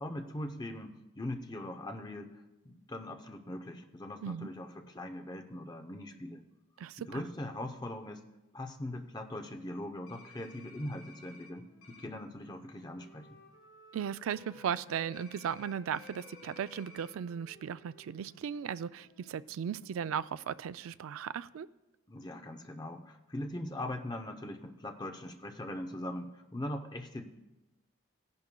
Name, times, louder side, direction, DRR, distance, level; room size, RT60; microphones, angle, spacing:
voice 1, 0.0-6.4 7.0-8.3 8.5-13.4 22.1-27.3, left 1 dB, 20° left, 6 dB, 0.6 m, -41 dB
voice 2, 6.8-7.2 13.9-21.7, right 8 dB, 85° right, 15 dB, 0.3 m, -37 dB
sound 1, 10.1-11.5 11.8-12.1 15.1-17.1, left 4 dB, 85° left, 1.5 m, -56 dB
Wind instrument woodwind instrument, 10.3-15.3 15.5-20.8, left 1 dB, 65° left, 1.8 m, -59 dB
16.0 x 10.5 x 2.2 m, 1.0 s
head